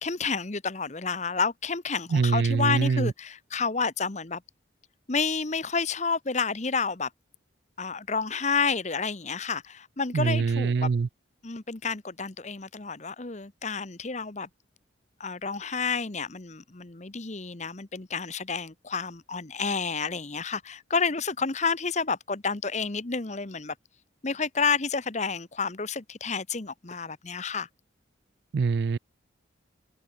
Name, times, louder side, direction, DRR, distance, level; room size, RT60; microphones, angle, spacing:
voice 1, 0.0-4.4 5.1-7.1 7.8-10.9 11.4-14.5 15.2-23.7 24.2-27.7, left 5 dB, 35° left, 1.0 m, -30 dB
voice 2, 2.1-3.1 10.1-11.1 28.5-29.0, right 5 dB, 55° right, 0.4 m, -24 dB
head